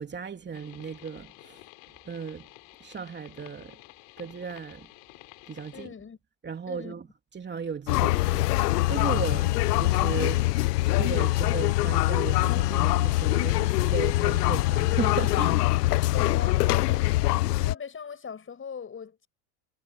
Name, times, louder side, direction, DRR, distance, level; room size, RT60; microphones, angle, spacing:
voice 1, 0.0-1.6 2.0-2.5 2.8-3.8 4.2-4.9 5.5-5.9 6.4-7.1 7.3-8.6 8.9-10.5 10.8-15.7, right 6 dB, 25° right, 2.9 m, -36 dB
sound 1, 0.5-5.9, left 30 dB, 65° left, 3.3 m, -51 dB
voice 2, 5.7-6.2 6.7-7.0 16.1-17.2 17.5-19.3, left 6 dB, 25° left, 7.3 m, -39 dB
sound 2, 7.9-17.7, left 18 dB, 85° left, 0.7 m, -24 dB
hypercardioid pair, 95°, 46 cm